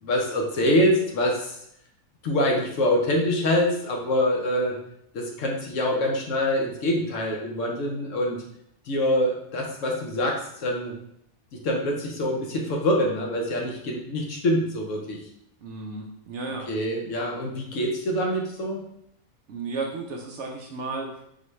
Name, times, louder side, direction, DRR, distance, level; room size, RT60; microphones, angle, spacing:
voice 1, 0.0-1.6 2.2-4.8 5.1-8.4 8.9-10.9 11.6-15.2 16.7-18.8, left 1 dB, 65° left, 0 dB, 1.0 m, -25 dB
voice 2, 15.6-16.7 19.5-21.3, right 3 dB, 65° right, 0 dB, 0.8 m, -33 dB
4.1 x 3.3 x 3.1 m, 0.74 s
omnidirectional pair, 1.5 m